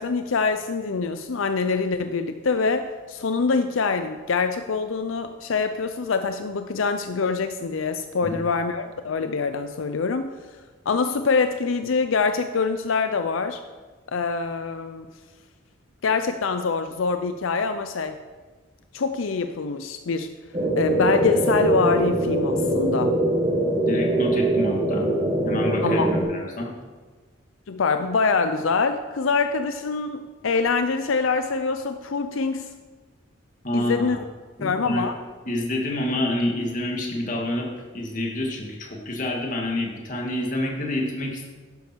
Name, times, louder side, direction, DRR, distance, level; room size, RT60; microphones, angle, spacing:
voice 1, 0.0-10.3 10.9-13.6 14.1-15.1 16.0-18.2 18.9-20.3 20.8-23.2 25.8-26.1 27.7-32.8 33.7-34.2 34.6-35.1, left 4 dB, 80° left, 9 dB, 0.5 m, -25 dB
sound 1, 20.5-26.2, right 1 dB, 30° right, 1.8 m, -22 dB
voice 2, 23.8-25.0 25.4-26.7 33.6-34.2 34.6-35.1 35.5-37.7 37.9-41.5, left 1 dB, 40° left, -1 dB, 2.2 m, -27 dB
11.5 x 10.5 x 4.6 m, 1.4 s
head